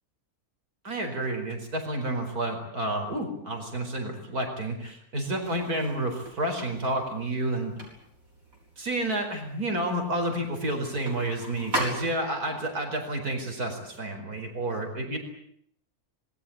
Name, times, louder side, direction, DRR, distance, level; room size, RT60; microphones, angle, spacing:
voice 1, 0.8-7.7 8.8-15.2, right 1 dB, 80° right, 4 dB, 5.2 m, -30 dB
sound 1, 5.4-12.5, right 1 dB, 65° right, 7.4 m, -39 dB
26.0 x 21.0 x 8.7 m, 0.69 s
omnidirectional pair, 1.6 m